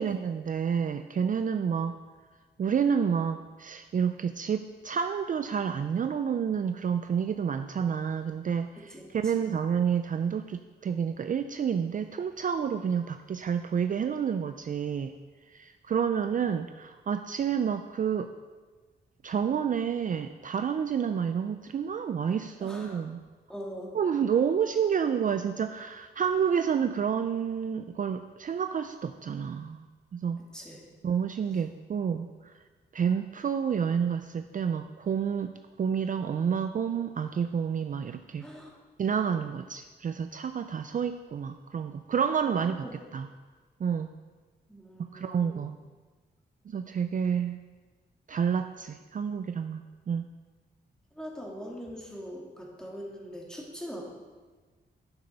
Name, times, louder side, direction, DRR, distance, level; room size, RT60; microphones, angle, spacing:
voice 1, 0.0-2.0 2.6-15.1 15.5-18.3 19.2-23.2 23.9-29.9 30.1-30.4 31.0-32.3 32.9-35.5 35.8-38.5 39.0-42.9 43.1-43.3 43.8-44.1 45.1-45.8 46.7-47.6 48.3-50.2, right 7 dB, 45° right, 8 dB, 0.4 m, -29 dB
voice 2, 22.6-23.1 23.5-23.9 30.5-30.8 38.4-38.7 42.6-42.7 44.7-45.6 51.1-54.0, equal, 5° left, -3 dB, 2.3 m, -42 dB
9.8 x 7.6 x 5.3 m, 1.4 s
wide cardioid pair, 110°, 18 cm